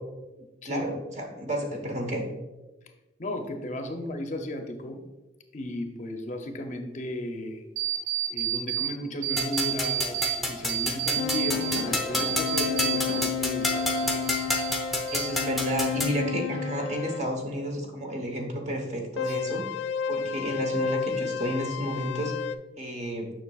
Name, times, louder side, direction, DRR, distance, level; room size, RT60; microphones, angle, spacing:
voice 1, 0.6-2.2 15.1-23.3, equal, 40° right, 2 dB, 1.0 m, -31 dB
voice 2, 3.2-5.0 5.5-7.6 8.3-14.3, left 1 dB, 40° left, 5 dB, 0.6 m, -35 dB
sound 1, 7.8-8.9 9.2-10.4 10.7-13.3 13.6-14.8 15.1-15.7, right 11 dB, 65° right, 1.8 m, -30 dB
sound 2, 9.4-16.2, left 1 dB, ahead, 0.6 m, -30 dB
sound 3, 11.2-17.2 19.2-22.6, left 8 dB, 85° left, 0.3 m, -32 dB
7.0 x 5.9 x 2.3 m, 1.1 s
head